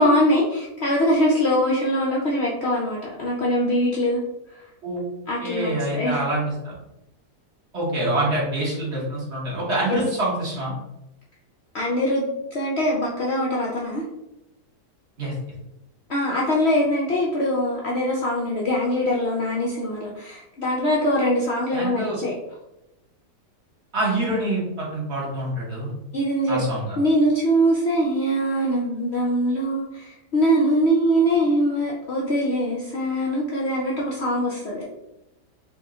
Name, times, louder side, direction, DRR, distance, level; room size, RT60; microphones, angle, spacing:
voice 1, 0.0-4.2 5.3-6.2 9.9-10.0 11.7-14.0 16.1-22.3 26.1-26.6 27.0-34.8, equal, 65° left, -3 dB, 0.6 m, -22 dB
voice 2, 5.4-6.7 7.7-10.7 15.2-15.3 21.7-22.2 23.9-25.9 26.5-27.0, right 1 dB, 45° right, -5 dB, 1.4 m, -26 dB
4.3 x 2.4 x 3.7 m, 0.90 s
omnidirectional pair, 1.8 m